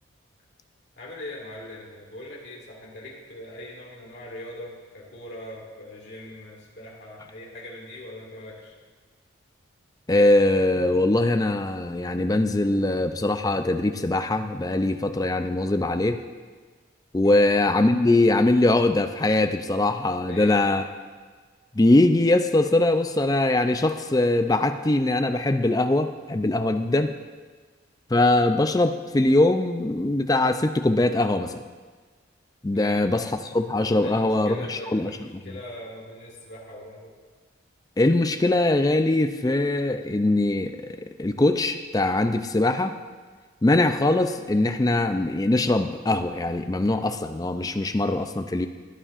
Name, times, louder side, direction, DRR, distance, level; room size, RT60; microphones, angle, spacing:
voice 1, 1.0-8.7 17.2-17.4 20.3-20.7 32.7-33.0 33.9-37.1, left 1 dB, 55° left, -4 dB, 2.2 m, -41 dB
voice 2, 10.1-16.2 17.1-20.8 21.8-27.1 28.1-31.6 32.6-35.1 35.4-35.5 38.0-43.0 43.6-48.7, left 2 dB, 20° left, 7 dB, 0.4 m, -22 dB
16.0 x 9.9 x 2.5 m, 1.4 s
head